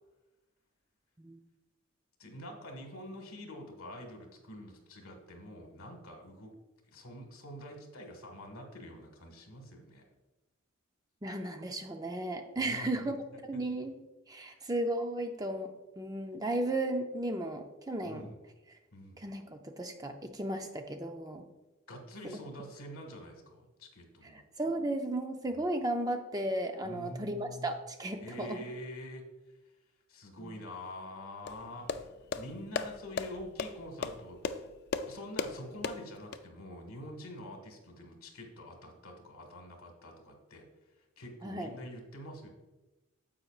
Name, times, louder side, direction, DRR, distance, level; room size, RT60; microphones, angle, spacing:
voice 1, 2.2-6.5 6.9-10.0 12.6-13.2 14.4-14.6 18.0-18.4 18.9-19.3 21.9-24.4 26.8-27.7 28.2-29.2 30.1-31.9 32.3-34.4 35.0-40.6 41.2-42.5, left 1 dB, 75° left, 3 dB, 1.7 m, -46 dB
voice 2, 11.2-13.2 13.4-14.0 14.3-15.7 16.0-18.3 19.2-21.4 22.2-22.4 24.3-28.6 30.4-30.5 41.4-41.7, right 1 dB, 15° right, 5 dB, 0.5 m, -35 dB
sound 1, 31.5-36.4, left 5 dB, 50° left, 0.4 m, -37 dB
9.7 x 7.8 x 2.4 m, 1.1 s
head